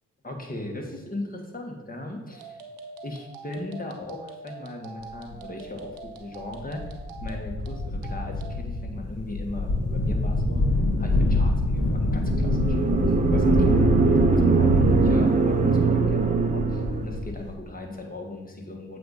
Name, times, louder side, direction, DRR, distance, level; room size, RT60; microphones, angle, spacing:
voice 1, 0.2-2.6 3.0-6.9 7.2-10.6 11.0-19.0, left 1 dB, 25° left, 2 dB, 1.4 m, -38 dB
sound 1, 2.3-8.6, right 3 dB, 80° right, 0.8 m, -44 dB
Wind Unedited, 5.3-5.4 6.1-6.2 6.5-17.5, left 2 dB, 45° left, 1.2 m, -26 dB
sound 2, 12.2-17.2, right 4 dB, 25° right, 0.7 m, -21 dB
7.6 x 2.7 x 5.4 m, 1.1 s
supercardioid pair, 55°, 35 cm